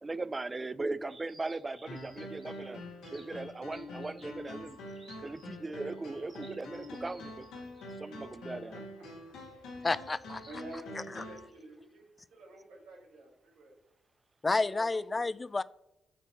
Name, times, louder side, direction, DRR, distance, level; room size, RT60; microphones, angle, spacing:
voice 1, 0.0-2.8 3.1-4.8 5.2-7.5 8.0-8.8, right 3 dB, 30° right, 0.4 m, -38 dB
sound 1, 1.1-8.1, right 3 dB, 50° right, 2.0 m, -58 dB
sound 2, 1.9-11.5, left 1 dB, 85° left, 1.9 m, -45 dB
voice 2, 8.5-9.6 10.4-13.8 14.5-15.3, right 1 dB, 85° right, 2.4 m, -50 dB
voice 3, 9.8-10.4 14.4-15.6, left 3 dB, 30° left, 0.4 m, -30 dB
8.2 x 2.9 x 5.7 m
supercardioid pair, 50°, 0 cm